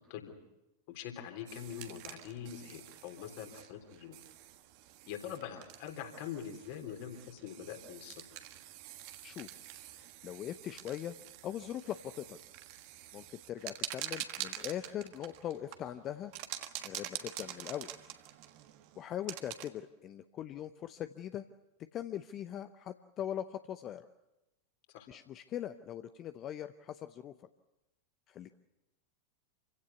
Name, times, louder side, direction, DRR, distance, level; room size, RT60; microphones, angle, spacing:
voice 1, 0.9-4.2 5.1-8.2 24.9-25.1, left 9 dB, 50° left, 5 dB, 3.6 m, -44 dB
sound 1, 1.5-19.7, right 13 dB, 45° right, 1.4 m, -47 dB
voice 2, 9.9-11.2 11.4-12.4 13.1-16.3 16.8-17.9 19.0-21.5 21.9-24.1 25.1-27.5 28.3-28.5, left 11 dB, 30° left, 10 dB, 0.7 m, -41 dB
27.5 x 16.5 x 8.2 m, 0.97 s
figure-of-eight pair, 90°, 0 cm